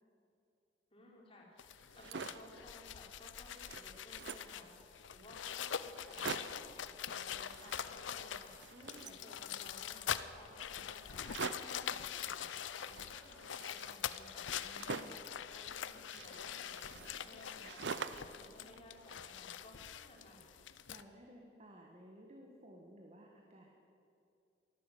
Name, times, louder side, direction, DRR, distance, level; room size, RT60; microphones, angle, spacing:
voice 1, 0.9-14.5 15.0-15.2 15.5-20.5, left 1 dB, 30° left, -2 dB, 3.5 m, -58 dB
sound 1, 1.6-21.0, left 9 dB, 90° left, 0.6 m, -44 dB
sound 2, 1.8-2.5 3.0-3.1 3.4-4.6 5.2-5.3 5.6-5.7 6.0-6.7 7.4-8.2 8.5-9.8 11.2-11.8 12.8-15.3 16.1-18.4 18.7-19.6, right 5 dB, 70° right, 0.6 m, -46 dB
voice 2, 8.7-9.2 11.6-12.1 14.6-15.2 20.6-23.7, equal, 35° right, 1 dB, 1.4 m, -57 dB
13.5 x 12.0 x 9.0 m, 2.6 s
head